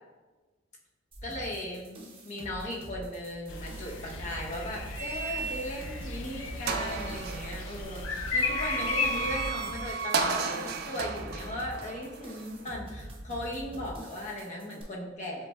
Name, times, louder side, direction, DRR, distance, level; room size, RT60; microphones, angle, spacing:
sound 1, 1.1-14.8, right 1 dB, 25° right, 0.7 m, -45 dB
voice 1, 1.2-15.5, left 1 dB, 35° left, -2 dB, 0.8 m, -37 dB
sound 2, 3.5-9.5, left 4 dB, 75° left, 0.4 m, -35 dB
sound 3, 5.0-5.9 6.3-6.4 6.7-12.8, right 5 dB, 50° right, 0.3 m, -34 dB
7.2 x 3.2 x 2.3 m, 1.3 s
head